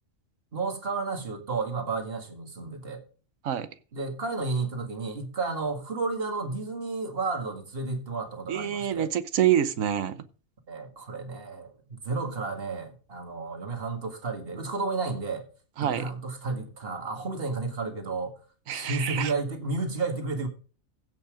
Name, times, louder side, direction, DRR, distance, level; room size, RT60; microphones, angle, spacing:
voice 1, 0.5-3.0 3.9-9.1 10.7-15.5 15.8-18.3 18.7-20.5, right 3 dB, 45° right, 2.1 m, -32 dB
voice 2, 8.5-10.2 15.8-16.1 18.7-19.3, right 10 dB, 85° right, 1.3 m, -26 dB
15.5 x 5.6 x 5.1 m
omnidirectional pair, 1.4 m